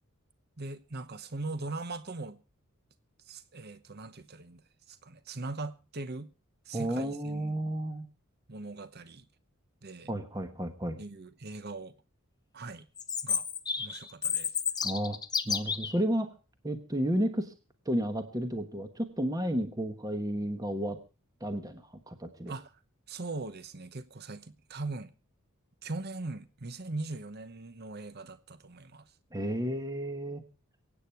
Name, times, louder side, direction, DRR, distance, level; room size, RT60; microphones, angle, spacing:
voice 1, 0.6-2.4 3.3-6.3 6.7-7.6 8.5-9.3 9.8-10.1 11.0-11.9 12.5-12.9 13.2-13.5 13.8-14.5 22.5-22.8 23.1-25.1 25.8-29.1, right 2 dB, 45° right, 1.0 m, -40 dB
voice 2, 6.7-8.1 10.1-11.0 14.8-15.2 15.5-16.3 16.6-17.5 17.9-21.0 21.4-22.5 29.3-30.4, right 1 dB, 15° right, 1.1 m, -32 dB
Chirp tweet, 13.0-15.9, left 6 dB, 20° left, 0.7 m, -31 dB
23.5 x 8.9 x 4.5 m
head